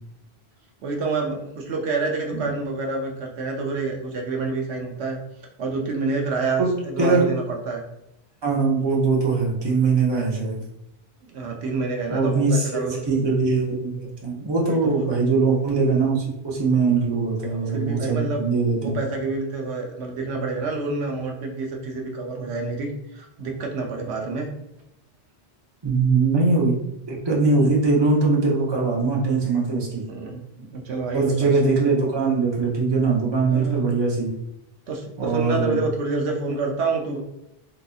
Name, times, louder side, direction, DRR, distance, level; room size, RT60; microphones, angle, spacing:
voice 1, 0.8-5.2 5.6-7.8 11.2-13.0 14.7-15.1 17.5-18.4 18.8-24.5 27.5-27.7 30.1-31.5 33.5-33.8 34.9-37.2, right 3 dB, 80° right, 1 dB, 0.9 m, -28 dB
voice 2, 7.0-7.3 8.4-10.6 12.1-19.1 25.8-26.8 27.1-30.0 31.1-34.3 35.2-35.8, right 4 dB, 25° right, -4 dB, 0.8 m, -21 dB
3.9 x 2.6 x 2.3 m, 0.85 s
omnidirectional pair, 1.1 m